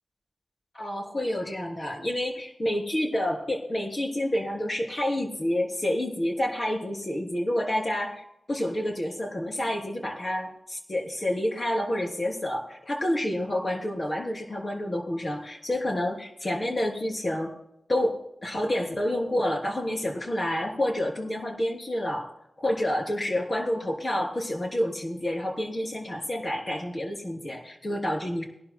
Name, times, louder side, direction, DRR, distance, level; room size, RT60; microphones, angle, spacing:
voice 1, 0.7-17.5 17.9-22.3 22.6-28.4, left 1 dB, 35° left, 1 dB, 3.3 m, -29 dB
21.5 x 11.5 x 2.2 m, 0.79 s
wide cardioid pair, 80°, 0 cm